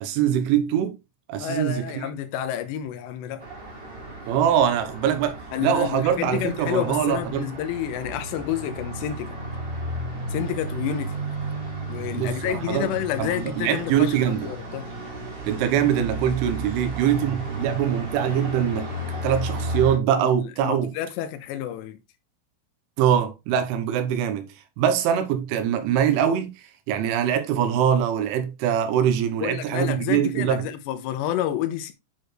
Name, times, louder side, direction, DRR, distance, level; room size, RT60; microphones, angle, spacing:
voice 1, 0.0-1.0 1.3-2.1 4.3-7.5 12.2-12.9 13.2-14.5 15.5-18.9 19.2-20.9 23.0-26.5 26.9-30.7, right 9 dB, 90° right, 3.5 m, -23 dB
voice 2, 1.4-3.5 5.5-9.4 10.3-11.2 11.9-14.9 20.2-22.0 29.4-31.9, left 11 dB, 80° left, 3.0 m, -29 dB
Traffic noise roadway noise, 3.4-20.0, right 1 dB, 30° right, 2.3 m, -33 dB
9.7 x 4.5 x 3.2 m
omnidirectional pair, 5.4 m